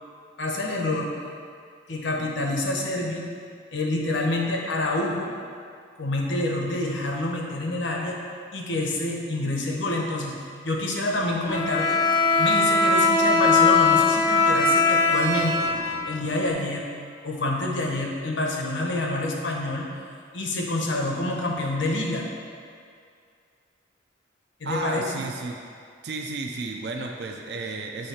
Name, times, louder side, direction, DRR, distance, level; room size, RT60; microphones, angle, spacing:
voice 1, 0.4-1.1 1.9-3.2 3.7-5.3 6.0-8.2 8.5-10.4 10.6-12.0 12.4-15.7 16.1-16.8 17.2-19.9 20.3-22.3 24.6-25.2, left 2 dB, 75° left, -1 dB, 0.9 m, -27 dB
Bowed string instrument, 11.5-16.5, left 3 dB, 20° left, 0.4 m, -20 dB
voice 2, 24.6-25.6 26.0-28.1, right 3 dB, 55° right, 2 dB, 0.4 m, -32 dB
7.9 x 3.2 x 4.3 m, 2.3 s
head